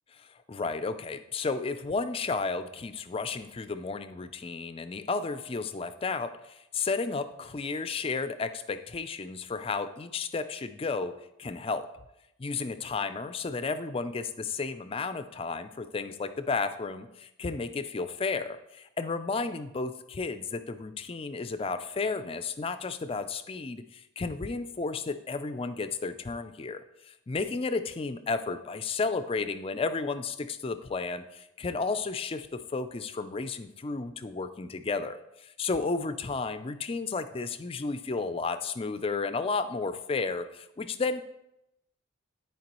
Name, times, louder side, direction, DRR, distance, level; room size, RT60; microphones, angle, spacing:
voice 1, 0.1-11.1 11.4-11.9 12.4-41.2, left 4 dB, 25° left, 11 dB, 0.4 m, -33 dB
12.5 x 4.5 x 3.0 m, 0.87 s
head